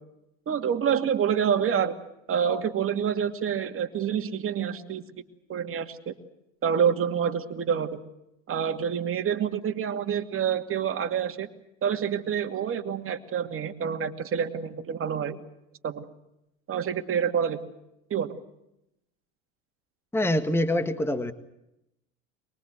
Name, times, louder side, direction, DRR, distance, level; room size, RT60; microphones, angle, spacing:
voice 1, 0.5-1.9 2.3-5.0 5.5-6.1 6.6-7.9 8.5-11.5 11.8-15.4 15.8-16.1 16.7-17.6 18.1-18.4, right 8 dB, 30° right, 6 dB, 2.6 m, -27 dB
voice 2, 20.1-21.3, left 1 dB, 5° left, 10 dB, 1.8 m, -25 dB
24.0 x 22.5 x 7.8 m, 0.85 s
hypercardioid pair, 95°, 40 cm